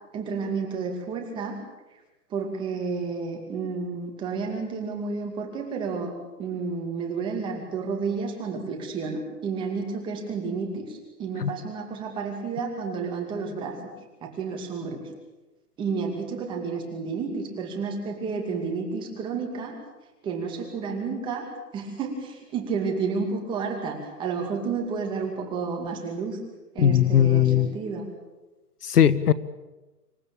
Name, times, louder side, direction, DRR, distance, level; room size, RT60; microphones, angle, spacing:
voice 1, 0.1-1.6 2.3-6.1 6.4-13.9 14.2-15.0 15.8-19.8 20.2-21.5 21.7-26.4 26.7-28.1, right 4 dB, 10° right, 2 dB, 2.4 m, -31 dB
voice 2, 26.8-27.7 28.8-29.3, left 10 dB, 70° left, 17 dB, 1.2 m, -19 dB
26.5 x 15.0 x 8.8 m, 1.1 s
hypercardioid pair, 165°, 48 cm